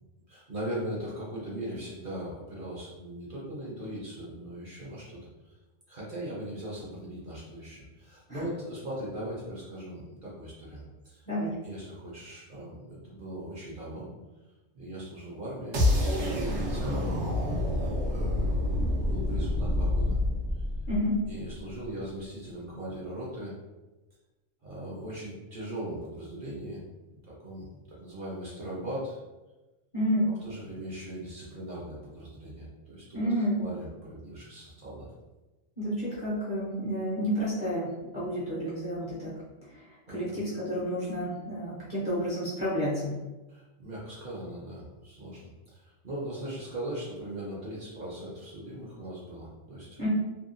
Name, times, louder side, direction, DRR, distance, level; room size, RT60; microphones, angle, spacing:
voice 1, 0.3-5.5 5.9-11.2 11.6-14.1 14.7-17.1 18.0-20.2 21.3-23.5 24.6-29.2 30.2-35.1 40.1-40.4 43.5-50.0, right 1 dB, 50° right, -6 dB, 0.8 m, -39 dB
sound 1, 15.7-21.7, left 1 dB, 80° right, 1.0 m, -28 dB
voice 2, 20.9-21.2 29.9-30.3 33.1-33.6 35.8-39.3 39.7-43.2 50.0-50.1, equal, 45° left, -9 dB, 0.7 m, -30 dB
2.8 x 2.2 x 2.4 m, 1.1 s
omnidirectional pair, 1.3 m